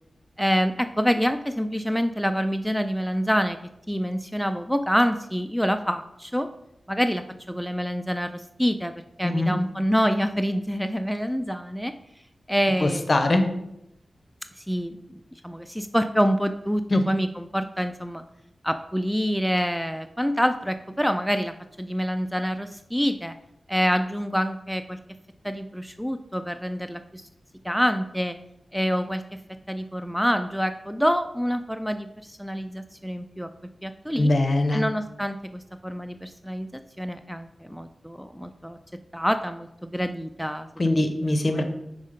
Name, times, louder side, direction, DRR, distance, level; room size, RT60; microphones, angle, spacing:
voice 1, 0.4-3.6 3.9-6.5 6.9-11.9 12.5-13.3 14.6-18.2 18.6-23.3 23.7-25.0 25.4-27.2 27.6-28.4 28.7-29.4 29.7-33.5 33.8-34.3 34.7-38.8 39.1-40.7 41.5-41.6, equal, ahead, 9 dB, 0.3 m, -26 dB
voice 2, 9.2-9.6 12.8-13.5 16.9-17.0 34.2-34.8 40.8-41.6, left 1 dB, 50° left, 7 dB, 0.8 m, -22 dB
5.4 x 3.6 x 5.1 m, 0.83 s
wide cardioid pair, 60°, 0 cm